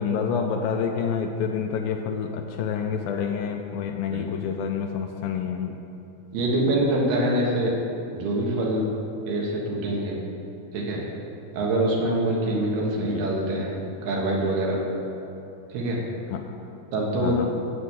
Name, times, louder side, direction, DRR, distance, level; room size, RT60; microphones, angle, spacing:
voice 1, 0.0-5.8 13.0-13.3 16.3-16.5 17.2-17.5, left 6 dB, 80° left, 4 dB, 2.2 m, -28 dB
voice 2, 6.3-7.7 8.1-8.9 9.3-10.2 10.7-11.0 11.5-13.8 14.0-14.8 15.7-16.0 16.9-17.4, right 1 dB, 80° right, -3 dB, 3.7 m, -24 dB
13.5 x 4.7 x 8.7 m, 2.8 s
omnidirectional pair, 4.5 m